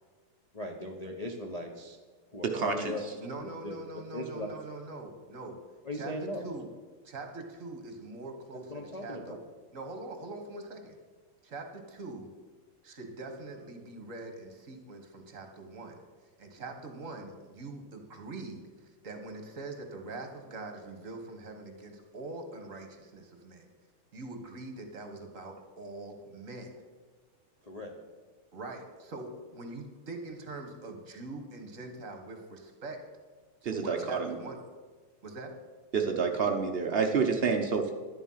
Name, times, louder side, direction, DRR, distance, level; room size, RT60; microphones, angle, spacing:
voice 1, 0.5-2.0 2.3-3.0 3.4-3.8 4.1-4.6 5.8-6.4 8.7-9.4 27.6-27.9, left 1 dB, 35° left, 0 dB, 0.6 m, -38 dB
voice 2, 2.4-2.9 33.6-34.3 35.9-37.9, right 5 dB, 90° right, 3 dB, 0.5 m, -28 dB
voice 3, 3.2-5.6 5.9-6.1 6.4-6.7 7.0-9.4 9.7-11.0 11.4-12.3 12.8-16.0 16.4-23.7 24.1-26.8 28.5-33.0 33.6-34.6 35.2-35.6, right 2 dB, 40° right, 5 dB, 1.6 m, -43 dB
11.5 x 10.0 x 5.6 m, 1.4 s
omnidirectional pair, 2.4 m